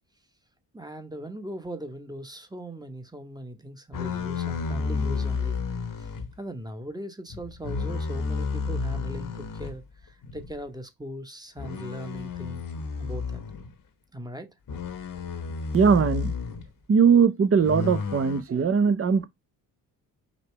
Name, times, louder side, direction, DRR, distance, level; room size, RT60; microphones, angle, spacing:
voice 1, 0.7-6.1 6.4-12.6 13.0-13.4 14.1-14.5, right 1 dB, 10° right, 1.1 m, -39 dB
sound 1, 3.9-6.3 7.3-9.8 10.2-10.5 11.6-13.7 14.7-16.7 17.6-18.4, left 5 dB, 45° left, 1.2 m, -31 dB
voice 2, 15.7-16.3 16.9-19.3, right 6 dB, 30° right, 0.8 m, -20 dB
5.3 x 2.8 x 3.1 m
hypercardioid pair, 50°, 45 cm